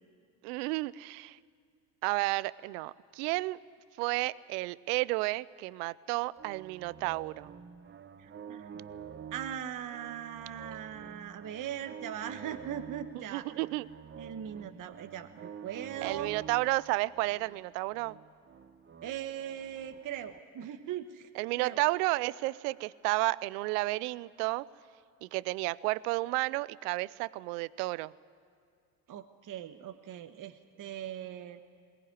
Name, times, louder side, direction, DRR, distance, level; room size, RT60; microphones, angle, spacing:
voice 1, 0.4-1.4 2.0-3.6 4.0-7.5 13.2-13.9 16.0-18.2 21.3-24.7 25.2-28.1, right 21 dB, 75° right, 20 dB, 0.6 m, -32 dB
sound 1, 6.4-20.4, right 7 dB, 25° right, 0.9 m, -48 dB
voice 2, 8.2-8.8 9.3-13.4 14.2-16.3 19.0-21.3 21.6-21.8 29.1-31.6, right 10 dB, 40° right, 7 dB, 1.3 m, -40 dB
22.0 x 18.0 x 9.7 m, 2.3 s
hypercardioid pair, 80°, 48 cm